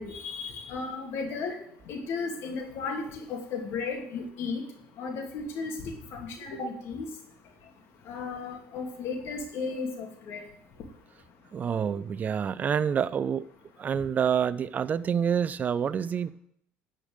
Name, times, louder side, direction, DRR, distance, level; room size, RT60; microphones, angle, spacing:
voice 1, 0.0-1.6 1.9-4.6 5.0-7.1 8.1-10.4, left 4 dB, 65° left, 2 dB, 2.5 m, -34 dB
voice 2, 11.5-13.4 13.8-16.3, right 7 dB, 35° right, 16 dB, 0.5 m, -27 dB
12.0 x 5.2 x 7.8 m, 0.68 s
supercardioid pair, 100°, 5 cm